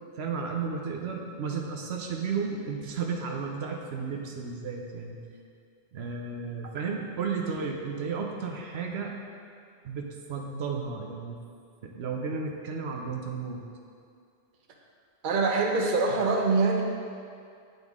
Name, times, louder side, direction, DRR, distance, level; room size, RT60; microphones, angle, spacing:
voice 1, 0.2-5.2 5.9-9.1 9.8-11.4 11.8-13.7, right 5 dB, 85° right, 1 dB, 0.9 m, -33 dB
voice 2, 15.2-16.8, right 3 dB, 55° right, 1 dB, 0.8 m, -24 dB
8.1 x 5.3 x 3.6 m, 2.3 s
omnidirectional pair, 1.1 m